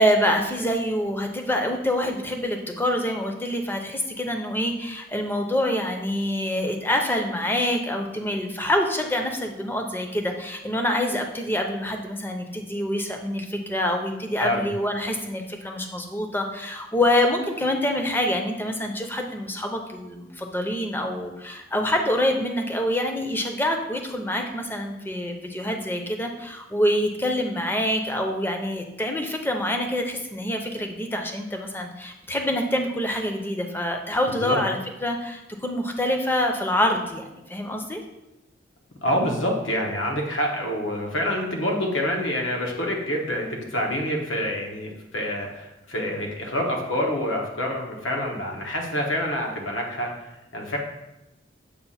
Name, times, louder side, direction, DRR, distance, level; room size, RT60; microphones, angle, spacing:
voice 1, 0.0-38.0, left 1 dB, 10° left, 3 dB, 0.5 m, -26 dB
voice 2, 39.0-50.8, equal, 85° left, 1 dB, 1.1 m, -27 dB
6.8 x 2.5 x 5.5 m, 0.95 s
head